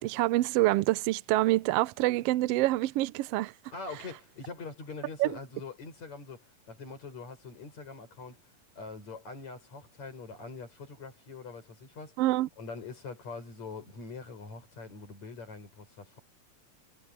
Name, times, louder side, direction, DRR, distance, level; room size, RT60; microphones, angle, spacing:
voice 1, 0.0-3.5 5.2-5.3 12.2-12.5, right 17 dB, 85° right, 1.4 m, -26 dB
voice 2, 3.7-8.4 8.8-12.2 12.6-16.2, left 4 dB, 65° left, 8.0 m, -43 dB
omnidirectional pair, 3.5 m